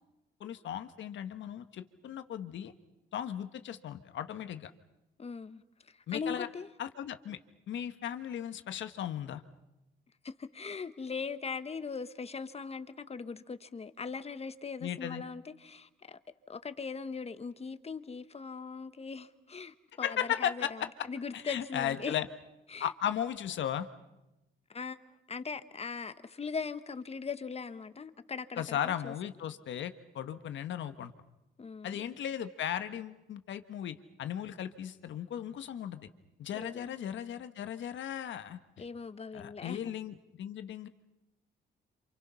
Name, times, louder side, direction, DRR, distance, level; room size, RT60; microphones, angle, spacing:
voice 1, 0.4-2.7 3.1-4.7 6.1-6.5 6.8-7.4 7.7-9.4 14.8-15.2 20.0-20.7 21.3-22.3 22.8-23.9 28.6-31.1 31.8-36.1 36.4-38.6 39.3-40.9, left 10 dB, 70° left, 1.5 m, -36 dB
voice 2, 5.2-6.7 10.2-16.2 16.5-22.1 22.7-22.9 24.7-25.0 25.3-29.1 31.6-32.1 36.5-37.0 38.8-39.9, left 5 dB, 30° left, 1.3 m, -40 dB
27.5 x 27.5 x 5.8 m
cardioid pair, 90°, 20 cm